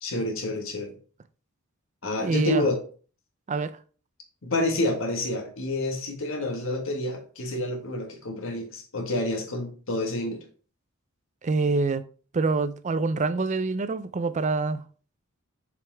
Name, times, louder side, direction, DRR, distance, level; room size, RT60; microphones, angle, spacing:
voice 1, 0.0-0.9 2.0-2.8 4.4-10.4, left 1 dB, 65° left, 1.6 m, -28 dB
voice 2, 2.2-2.7 3.5-3.7 11.4-12.0 12.3-14.8, right 3 dB, 35° right, 0.4 m, -25 dB
6.8 x 5.0 x 3.4 m
head